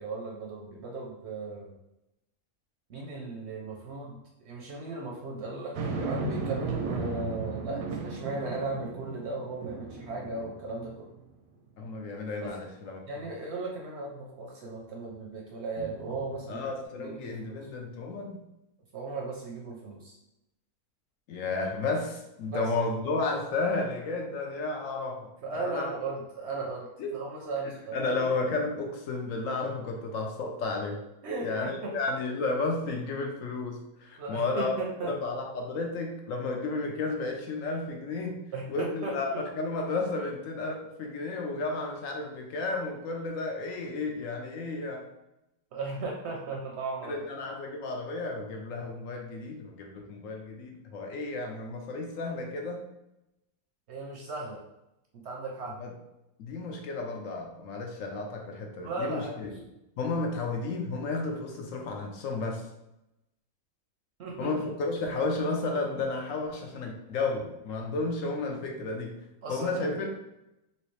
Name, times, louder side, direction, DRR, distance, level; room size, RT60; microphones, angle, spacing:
voice 1, 0.0-1.7 2.9-11.1 12.4-12.6 13.1-17.7 18.9-20.2 22.5-22.7 25.4-26.9 27.1-28.3 31.2-31.9 34.2-35.2 38.5-39.4 45.7-47.3 53.9-54.6 55.2-55.8 58.8-59.4 64.2-64.5 69.4-70.0, right 3 dB, 65° right, -1 dB, 0.7 m, -36 dB
sound 1, 5.7-11.3 11.8-11.9 15.8-16.8, right 4 dB, 85° right, 1.1 m, -36 dB
voice 2, 11.8-13.0 16.5-18.4 21.3-25.9 27.0-27.2 27.9-31.0 31.4-34.7 35.0-38.4 38.7-45.0 47.0-52.8 55.8-55.9 56.4-59.5 60.0-62.7 64.4-70.1, left 3 dB, 70° left, 2 dB, 0.9 m, -32 dB
3.1 x 2.9 x 3.1 m, 0.89 s
omnidirectional pair, 1.5 m